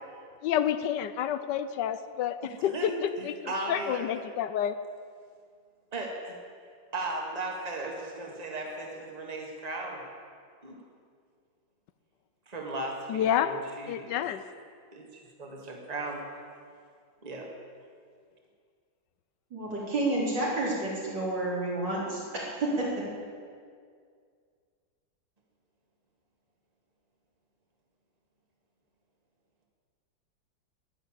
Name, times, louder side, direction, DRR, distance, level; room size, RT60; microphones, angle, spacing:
voice 1, 0.4-4.8 13.1-13.5 13.9-14.4, left 10 dB, 75° left, 12 dB, 1.1 m, -29 dB
voice 2, 2.4-2.9 3.2-4.1 5.9-6.4 6.9-10.0 10.6-10.8 12.5-14.2 14.9-16.2 17.2-17.5, right 2 dB, 20° right, 0 dB, 1.8 m, -36 dB
voice 3, 19.5-23.1, right 2 dB, 65° right, -5 dB, 4.2 m, -30 dB
11.0 x 10.5 x 8.9 m, 2.1 s
omnidirectional pair, 2.0 m